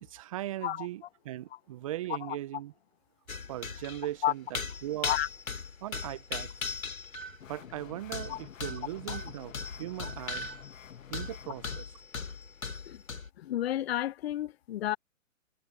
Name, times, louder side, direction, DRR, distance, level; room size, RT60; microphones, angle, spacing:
voice 1, 0.0-2.7 3.5-5.1 5.8-6.5 7.5-10.5 11.1-12.0, right 14 dB, 25° right, 0.4 m, -39 dB
sound 1, 3.3-4.1 4.5-7.4 8.1-10.9 11.1-13.3, left 4 dB, 90° left, 2.9 m, -38 dB
sound 2, 7.4-11.8, left 9 dB, 70° left, 1.6 m, -49 dB
voice 2, 13.4-15.0, left 13 dB, 50° left, 0.6 m, -31 dB
hypercardioid pair, 135°, 40 cm